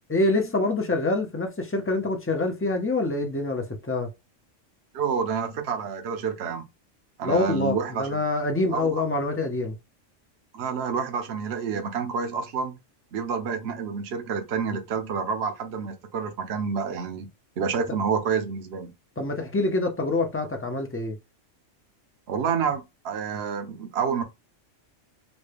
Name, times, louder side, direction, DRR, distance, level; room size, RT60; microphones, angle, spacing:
voice 1, 0.1-4.1 7.2-9.7 19.2-21.2, left 2 dB, 20° left, 0.4 m, -26 dB
voice 2, 4.9-6.6 7.2-8.1 8.7-9.0 10.5-12.8 13.1-17.3 17.6-18.9 22.3-24.2, right 6 dB, 60° right, 0.9 m, -28 dB
4.0 x 2.2 x 3.3 m
omnidirectional pair, 1.3 m